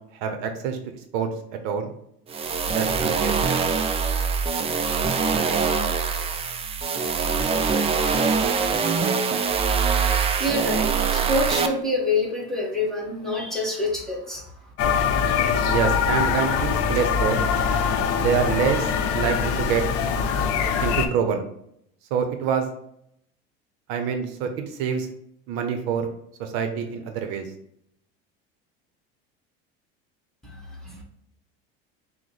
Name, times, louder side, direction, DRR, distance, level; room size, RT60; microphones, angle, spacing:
voice 1, 0.2-0.8 1.1-1.9 2.7-3.3 15.6-17.4 18.1-19.8 20.8-21.5 22.1-22.7 23.9-25.1 25.5-26.1 26.4-27.5, right 7 dB, 70° right, 6 dB, 0.7 m, -26 dB
sound 1, 2.3-11.7, right 5 dB, 20° right, 0.4 m, -23 dB
voice 2, 9.3-9.6 9.9-14.4 30.8-31.0, left 2 dB, ahead, -3 dB, 1.3 m, -27 dB
sound 2, 14.8-21.1, left 6 dB, 50° left, 0.5 m, -23 dB
6.1 x 2.1 x 3.1 m, 0.74 s
supercardioid pair, 115°, 30 cm